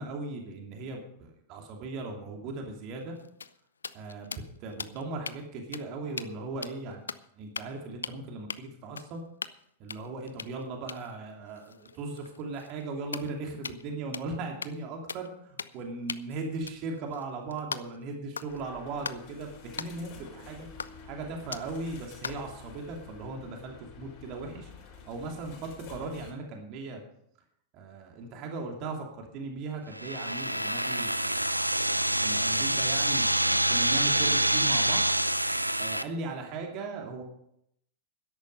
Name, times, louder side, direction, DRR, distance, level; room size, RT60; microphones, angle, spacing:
voice 1, 0.0-3.2 3.9-7.0 7.4-9.2 9.8-20.1 20.5-20.7 21.0-24.7 25.1-27.0 27.7-31.5 32.2-35.1 35.8-37.2, right 3 dB, 40° right, 2 dB, 2.8 m, -38 dB
sound 1, 3.0-5.4 5.7-5.8 6.1-6.3 6.6-7.2 7.5-8.2 8.5-8.6 9.0-9.6 9.9-13.9 14.1-14.3 14.6-14.8 15.1-15.3 15.6-15.8 16.1-18.0 18.3-18.6 19.0-19.2 19.8-19.9 20.8-21.1 21.5-21.8 22.2-22.5, left 5 dB, 75° left, 0.5 m, -40 dB
sound 2, 18.5-26.3, left 5 dB, 40° left, 5.3 m, -49 dB
sound 3, 29.9-36.0, right 1 dB, 85° right, 0.5 m, -26 dB
13.0 x 10.5 x 5.5 m, 0.73 s
figure-of-eight pair, 90°, 0 cm